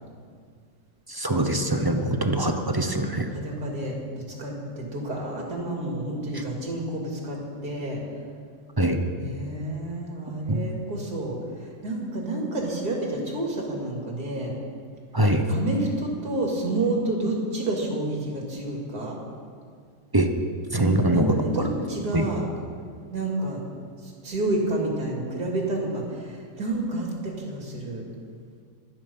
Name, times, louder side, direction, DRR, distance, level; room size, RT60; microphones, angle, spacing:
voice 1, 1.1-3.3 8.8-9.0 10.5-10.6 15.1-15.5 20.1-20.3 20.7-21.3 22.1-22.3, right 1 dB, 20° right, 5 dB, 0.6 m, -23 dB
voice 2, 1.9-2.2 3.3-8.0 9.1-14.5 15.5-19.2 20.7-22.4 23.1-23.6 24.0-28.1, right 2 dB, 55° right, -1 dB, 3.4 m, -29 dB
25.0 x 9.6 x 5.6 m, 2.1 s
omnidirectional pair, 2.0 m